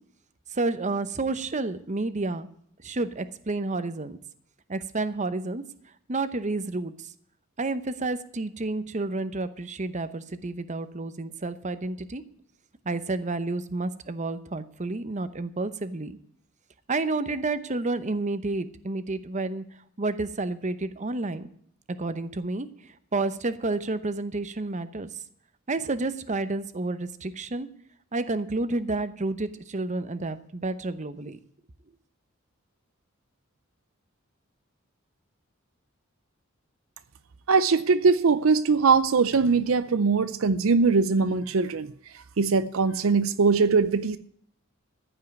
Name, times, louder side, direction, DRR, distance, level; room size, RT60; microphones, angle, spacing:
voice 1, 0.5-2.5 2.8-4.2 4.7-5.6 6.1-7.1 7.6-12.2 12.8-16.2 16.9-19.6 20.0-21.5 22.0-22.7 23.1-25.1 25.7-27.7 28.1-31.4, right 2 dB, 35° right, 13 dB, 0.8 m, -30 dB
voice 2, 37.5-41.9 42.4-44.2, right 4 dB, 75° right, 13 dB, 0.6 m, -21 dB
14.5 x 5.6 x 9.3 m, 0.66 s
head